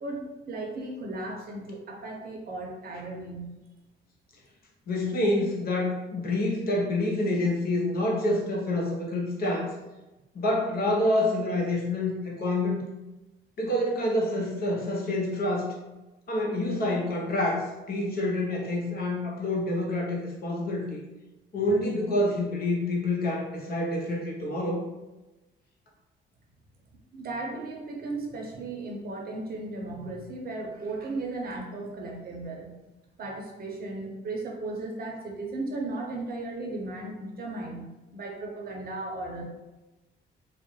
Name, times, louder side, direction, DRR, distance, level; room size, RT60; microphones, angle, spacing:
voice 1, 0.0-3.5 27.1-32.8 33.2-39.4, right 2 dB, 50° right, -1 dB, 0.6 m, -36 dB
voice 2, 4.9-9.7 10.3-12.8 13.6-15.7 16.3-21.0 21.5-24.8, left 1 dB, 50° left, -2 dB, 0.7 m, -27 dB
2.3 x 2.0 x 3.0 m, 1.1 s
cardioid pair, 90°, 20 cm